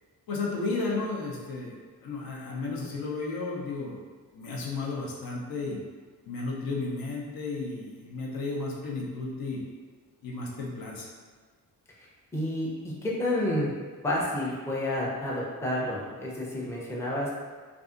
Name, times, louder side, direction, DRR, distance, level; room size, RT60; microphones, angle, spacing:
voice 1, 0.3-4.0 4.3-5.8 6.3-9.6 10.2-11.1, left 3 dB, 75° left, -3 dB, 0.7 m, -33 dB
voice 2, 12.3-13.7 14.0-17.3, left 1 dB, 10° left, -5 dB, 0.4 m, -30 dB
2.6 x 2.4 x 2.4 m, 1.5 s
cardioid pair, 110°, 36 cm